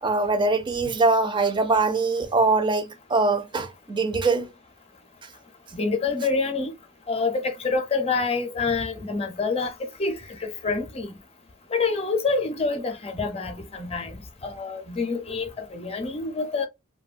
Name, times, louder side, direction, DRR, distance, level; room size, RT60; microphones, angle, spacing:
voice 1, 0.0-4.5, right 3 dB, 25° right, 0.4 m, -22 dB
voice 2, 5.7-6.7 7.1-9.7 10.0-11.1 11.7-16.7, left 4 dB, 30° left, 0.6 m, -27 dB
3.0 x 2.2 x 2.4 m
head